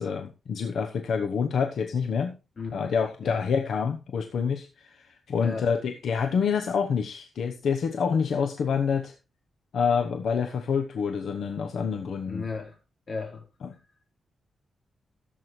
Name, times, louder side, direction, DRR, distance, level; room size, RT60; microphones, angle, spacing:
voice 1, 0.0-2.3 2.7-9.1 9.7-12.5, left 6 dB, 75° left, 6 dB, 0.9 m, -27 dB
voice 2, 12.3-12.8 13.1-13.5, left 4 dB, 45° left, 2 dB, 3.6 m, -34 dB
15.0 x 7.6 x 3.2 m, 0.29 s
wide cardioid pair, 135°, 0 cm